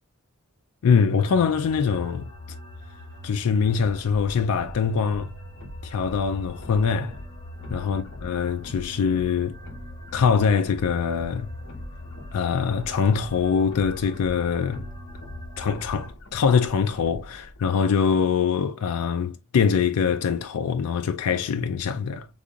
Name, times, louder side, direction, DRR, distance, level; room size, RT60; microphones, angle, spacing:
voice 1, 0.8-2.3 3.2-5.3 5.8-7.2 7.7-9.6 10.1-11.5 12.3-14.9 15.6-22.3, left 6 dB, 85° left, 0.4 m, -23 dB
sound 1, 1.2-16.1, left 1 dB, 20° left, 1.3 m, -41 dB
sound 2, 4.0-17.7, equal, 60° left, 1.0 m, -44 dB
5.3 x 3.6 x 2.3 m
head